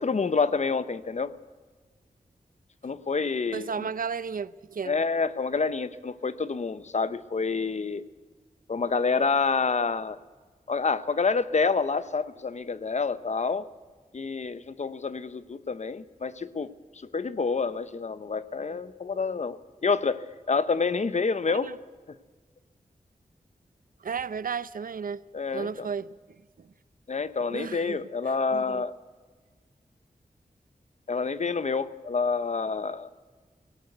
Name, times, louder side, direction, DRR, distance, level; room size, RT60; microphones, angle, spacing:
voice 1, 0.0-1.3 2.8-3.8 4.8-8.0 8.7-10.2 10.7-13.7 14.1-16.7 17.1-21.7 25.3-25.9 27.1-28.9 31.1-33.1, left 4 dB, 50° left, 0.9 m, -28 dB
voice 2, 3.5-5.0 21.5-21.7 24.0-25.2 25.5-26.1 26.6-26.7 27.5-28.0 28.5-28.8, right 6 dB, 70° right, 0.7 m, -33 dB
18.5 x 17.5 x 8.1 m
wide cardioid pair, 85°, 15 cm